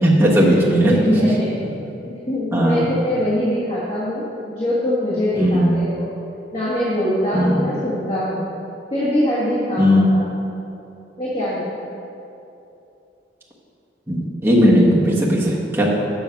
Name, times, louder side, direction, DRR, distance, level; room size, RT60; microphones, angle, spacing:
voice 1, 0.0-0.9 2.5-2.8 5.3-5.7 7.3-7.6 9.8-10.1 14.1-15.9, equal, 15° right, -6 dB, 1.3 m, -16 dB
voice 2, 0.8-1.5 2.0-6.1 6.5-8.5 8.9-10.2 11.2-11.7, left 1 dB, 35° left, -9 dB, 1.7 m, -23 dB
8.0 x 6.2 x 5.8 m, 2.8 s
head